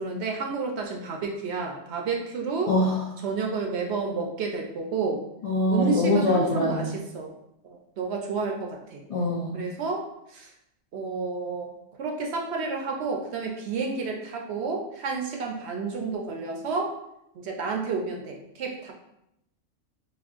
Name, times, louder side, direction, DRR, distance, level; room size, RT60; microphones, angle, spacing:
voice 1, 0.0-2.7 3.2-5.2 5.7-7.3 7.6-9.0 9.5-10.5 10.9-16.9 17.3-18.9, right 4 dB, 65° right, 2 dB, 0.7 m, -30 dB
voice 2, 2.7-3.0 5.4-6.9 9.1-9.5, left 1 dB, 55° left, -5 dB, 0.4 m, -23 dB
4.1 x 2.9 x 2.4 m, 0.81 s
omnidirectional pair, 1.3 m